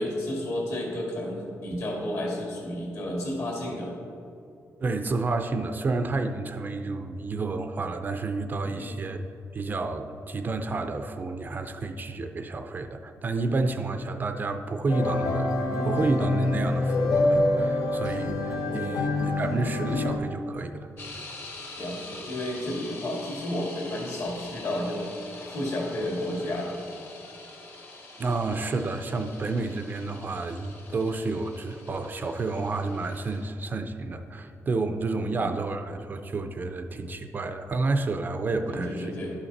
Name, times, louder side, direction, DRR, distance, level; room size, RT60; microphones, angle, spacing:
voice 1, 0.0-3.9 8.6-8.9 18.6-18.9 21.8-26.7 35.1-35.5 38.7-39.3, left 1 dB, 60° left, -1 dB, 2.1 m, -32 dB
voice 2, 4.8-9.2 9.5-20.9 28.2-39.2, right 3 dB, 35° right, 7 dB, 0.4 m, -30 dB
sound 1, 14.9-20.2, left 2 dB, 80° left, 0.9 m, -26 dB
sound 2, 21.0-33.5, left 2 dB, 45° left, 1.1 m, -45 dB
11.0 x 5.8 x 4.0 m, 2.7 s
wide cardioid pair, 145°, 6 cm